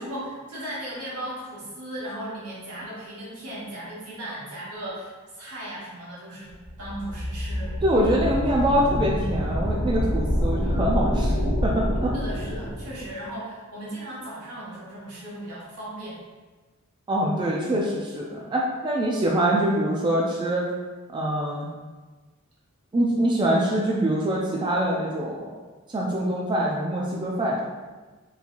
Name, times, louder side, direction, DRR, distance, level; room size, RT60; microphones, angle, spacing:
voice 1, 0.0-7.7 12.1-16.2, right 1 dB, 80° right, -8 dB, 1.4 m, -37 dB
sound 1, 6.6-13.1, equal, 50° left, 1.0 m, -27 dB
voice 2, 7.8-11.3 11.6-12.1 17.1-20.7 21.1-21.7 22.9-25.5 25.9-27.6, right 1 dB, 20° right, -3 dB, 0.3 m, -24 dB
3.8 x 2.9 x 2.5 m, 1.3 s
head